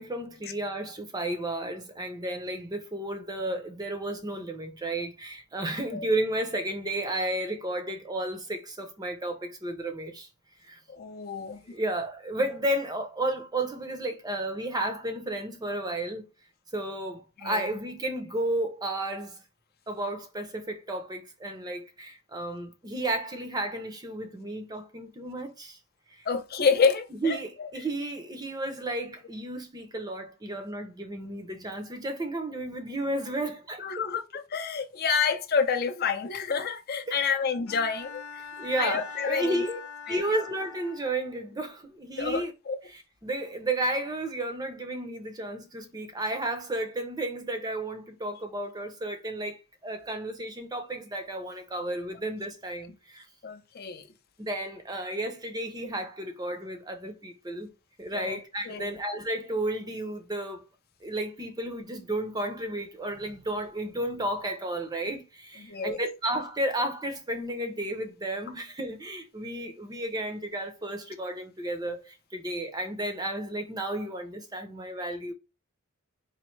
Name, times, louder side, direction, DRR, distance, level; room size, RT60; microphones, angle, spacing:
voice 1, 0.0-10.3 10.6-10.8 11.7-16.3 16.7-19.4 19.9-25.8 26.1-26.3 27.2-33.9 37.1-37.4 38.6-39.8 40.1-42.5 42.9-53.3 54.4-57.7 58.0-60.6 61.0-75.3, right 1 dB, 20° right, 0.5 m, -32 dB
voice 2, 10.9-11.6 17.4-17.7 26.3-27.7 33.8-38.2 38.8-39.7 40.1-40.2 42.2-42.8 53.4-54.1 58.1-58.4 58.7-59.0 65.6-66.0, left 5 dB, 45° left, 0.5 m, -28 dB
Bowed string instrument, 37.7-41.4, left 6 dB, 75° left, 0.8 m, -43 dB
4.2 x 2.6 x 3.1 m
head